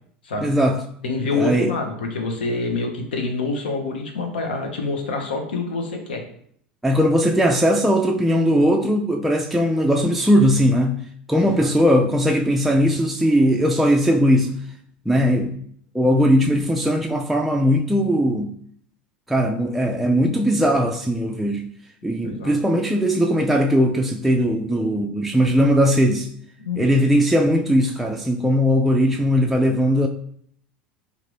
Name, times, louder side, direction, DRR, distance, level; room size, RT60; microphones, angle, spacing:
voice 1, 0.4-0.8 1.3-1.7 6.8-11.0 11.3-14.6 15.1-15.6 15.9-18.5 19.3-21.6 22.0-26.3 26.8-30.1, equal, 5° right, 0.3 m, -19 dB
voice 2, 1.0-6.2 11.4-11.7 22.2-22.6 26.6-26.9, left 3 dB, 80° left, 0.8 m, -26 dB
3.7 x 2.5 x 3.1 m
hypercardioid pair, 80°, 5 cm